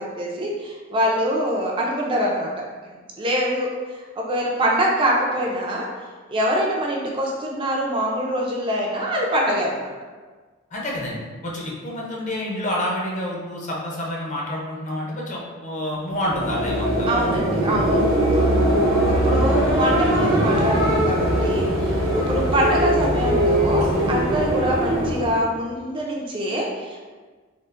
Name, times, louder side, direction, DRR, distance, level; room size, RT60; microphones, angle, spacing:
voice 1, 0.0-2.5 3.2-5.9 6.3-9.9 17.1-18.0 19.1-27.0, equal, 25° right, -2 dB, 0.3 m, -24 dB
voice 2, 10.7-11.2 11.4-17.1, left 1 dB, 35° left, -3 dB, 0.6 m, -28 dB
sound 1, 16.1-25.5, right 1 dB, 80° right, 0.9 m, -21 dB
3.7 x 2.4 x 2.4 m, 1.4 s
head